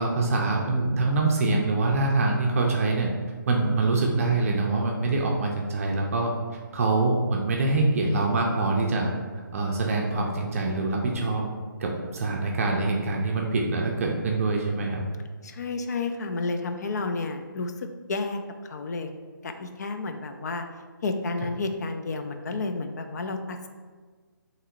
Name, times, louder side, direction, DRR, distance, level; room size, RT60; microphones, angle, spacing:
voice 1, 0.0-3.1 3.5-6.3 6.7-9.1 9.5-11.4 11.8-15.0, right 3 dB, 40° right, 0 dB, 0.5 m, -24 dB
voice 2, 15.4-19.1 19.4-20.7 21.0-23.7, left 3 dB, 50° left, 6 dB, 0.4 m, -31 dB
5.5 x 3.0 x 2.5 m, 1.5 s
figure-of-eight pair, 150°, 11 cm